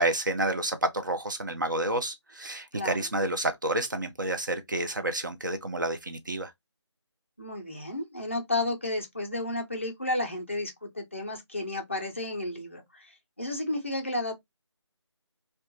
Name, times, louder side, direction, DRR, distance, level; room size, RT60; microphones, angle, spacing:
voice 1, 0.0-6.5, right 1 dB, 40° right, 0.4 m, -29 dB
voice 2, 2.7-3.1 7.4-14.3, left 2 dB, 25° left, 0.4 m, -32 dB
2.3 x 2.1 x 2.7 m
figure-of-eight pair, 175°, 15 cm